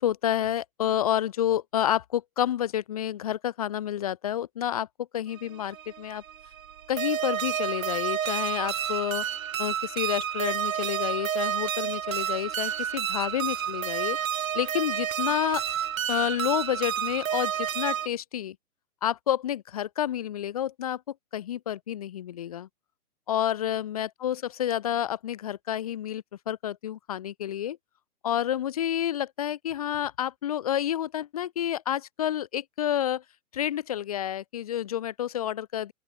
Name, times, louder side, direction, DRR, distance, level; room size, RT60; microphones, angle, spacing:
voice 1, 0.0-6.2 6.9-9.3 9.6-14.2 14.5-15.6 16.1-18.6 19.0-21.0 21.3-22.7 23.3-27.8 28.2-33.2 33.5-35.9, left 11 dB, 25° left, 0.6 m, -29 dB
sound 1, 5.4-18.1, right 9 dB, 60° right, 2.8 m, -30 dB
open air
hypercardioid pair, 150°, 46 cm